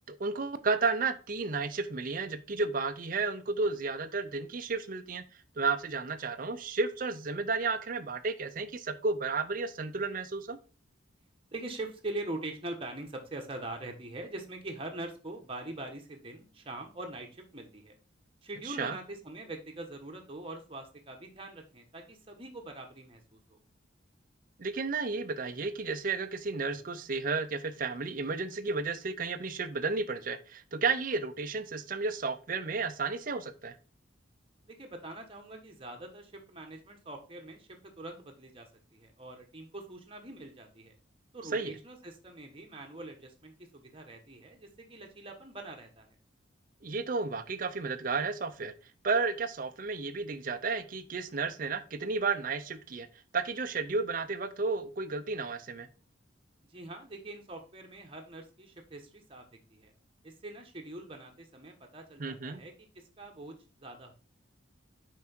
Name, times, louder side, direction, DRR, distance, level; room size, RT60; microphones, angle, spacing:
voice 1, 0.1-5.2 5.6-10.6 18.6-19.0 24.6-33.8 41.5-41.7 46.8-48.7 49.0-53.1 53.3-55.9 62.2-62.6, right 4 dB, 45° right, 9 dB, 0.6 m, -32 dB
voice 2, 11.5-17.9 18.4-23.6 34.6-40.9 41.3-46.1 56.7-59.9 60.2-64.1, right 2 dB, 30° right, 3 dB, 1.3 m, -43 dB
6.0 x 4.6 x 4.4 m, 0.35 s
head